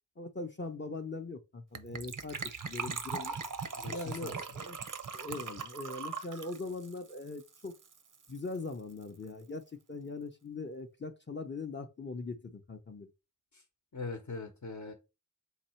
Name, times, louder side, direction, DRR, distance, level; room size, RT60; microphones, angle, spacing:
voice 1, 0.2-2.4 2.6-3.4 3.9-4.8 5.1-7.7 8.3-13.1, left 3 dB, 35° left, 0.6 m, -41 dB
Gurgling / Trickle dribble / Fill (with liquid), 1.8-8.0 8.2-8.3 8.5-8.7 9.0-9.1, right 5 dB, 70° right, 0.6 m, -40 dB
voice 2, 3.7-4.4 13.5-13.6 13.9-14.9, left 4 dB, 65° left, 0.9 m, -41 dB
4.0 x 2.7 x 4.3 m
wide cardioid pair, 45°, 32 cm